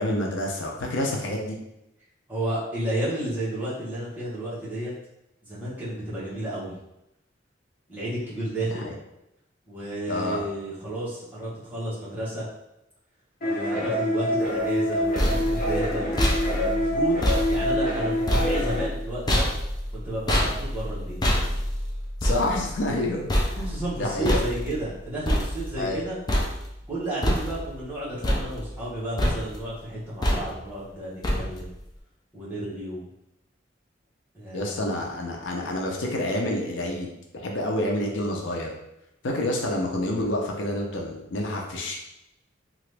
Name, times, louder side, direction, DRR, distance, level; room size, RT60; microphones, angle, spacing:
voice 1, 0.0-1.6 8.7-8.9 10.1-10.4 22.2-23.3 23.6-24.4 25.8-26.0 34.5-37.1 37.3-38.7 39.2-42.0, left 1 dB, 80° left, 0 dB, 0.6 m, -28 dB
voice 2, 2.3-4.9 5.4-6.7 7.9-8.9 9.7-12.5 13.4-16.1 16.6-19.5 19.9-21.2 23.5-26.2 26.9-31.7 32.3-33.0 34.3-34.9, right 1 dB, 10° right, -9 dB, 1.1 m, -32 dB
sound 1, 13.4-18.9, left 1 dB, 45° left, 0.8 m, -26 dB
sound 2, 14.8-26.0 26.3-26.9 27.2-27.9 28.2-28.9 29.2-29.7 30.2-30.8 31.2-31.8, equal, 20° left, 0.4 m, -27 dB
2.9 x 2.4 x 3.3 m, 0.87 s
head